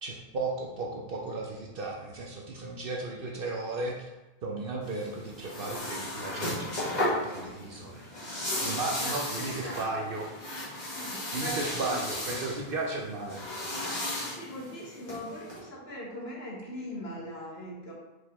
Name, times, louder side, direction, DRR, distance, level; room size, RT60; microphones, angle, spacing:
voice 1, 0.0-4.1 4.4-8.4 8.6-10.3 11.3-13.5, right 3 dB, 65° right, -1 dB, 0.9 m, -35 dB
sound 1, 4.8-15.6, left 1 dB, 45° left, 1.9 m, -35 dB
voice 2, 8.5-9.9 10.8-12.0 14.1-17.9, equal, 80° left, -3 dB, 1.6 m, -41 dB
4.9 x 4.5 x 4.2 m, 1.0 s
omnidirectional pair, 1.0 m